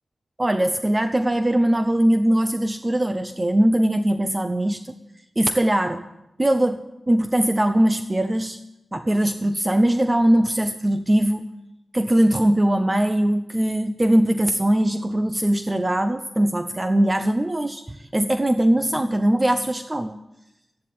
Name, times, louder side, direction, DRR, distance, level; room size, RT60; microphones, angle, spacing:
voice 1, 0.4-4.9 5.4-6.0 6.4-8.6 8.9-11.5 11.9-20.2, right 1 dB, 20° right, 9 dB, 0.7 m, -21 dB
14.0 x 11.0 x 8.6 m, 0.89 s
wide cardioid pair, 115°, 0 cm